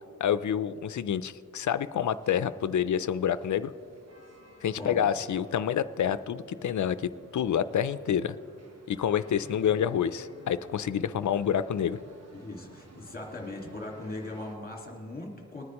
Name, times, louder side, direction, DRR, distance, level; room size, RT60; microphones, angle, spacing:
voice 1, 0.2-3.7 4.6-8.3 8.9-12.0, left 9 dB, 65° left, 14 dB, 0.5 m, -28 dB
sound 1, 2.1-14.6, right 1 dB, 55° right, 1.3 m, -54 dB
voice 2, 4.7-5.1 12.3-15.7, left 2 dB, 30° left, -1 dB, 1.9 m, -39 dB
20.0 x 9.6 x 3.0 m, 2.3 s
wide cardioid pair, 135°, 31 cm